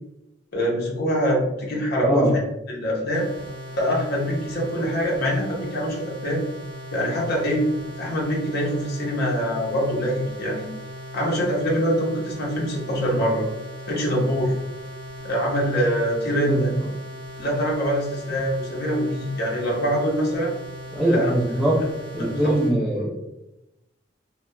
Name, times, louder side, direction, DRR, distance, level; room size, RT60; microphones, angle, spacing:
voice 1, 0.5-2.3 2.7-3.3 3.7-6.4 6.9-7.7 8.0-10.7 11.1-13.5 13.9-14.5 15.2-16.7 17.4-20.5 21.1-21.3 22.2-22.3, equal, 60° left, -2 dB, 0.7 m, -24 dB
voice 2, 2.0-2.3 16.4-16.9 20.9-21.8 22.1-23.1, right 1 dB, ahead, -4 dB, 0.5 m, -22 dB
sound 1, 3.1-22.7, equal, 55° right, 0.7 m, -38 dB
2.7 x 2.0 x 2.2 m, 0.91 s
head